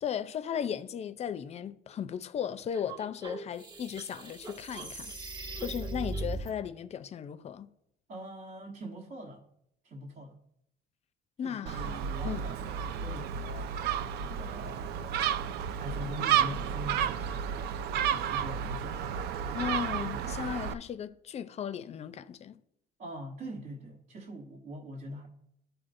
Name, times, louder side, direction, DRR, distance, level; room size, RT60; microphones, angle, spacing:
voice 1, 0.0-5.1 5.6-7.7 11.4-12.0 12.2-12.4 19.5-22.6, left 8 dB, 40° left, 0.5 m, -36 dB
sound 1, 2.7-6.5, right 2 dB, 25° right, 1.1 m, -39 dB
voice 2, 8.1-9.4 9.8-10.4 11.4-13.7 14.2-15.3 15.8-17.7 17.9-19.0 23.0-25.3, equal, 55° right, 1.2 m, -43 dB
Gull seagull, 11.7-20.7, right 9 dB, 75° right, 0.4 m, -32 dB
12.5 x 4.5 x 2.6 m
cardioid pair, 110°, 17 cm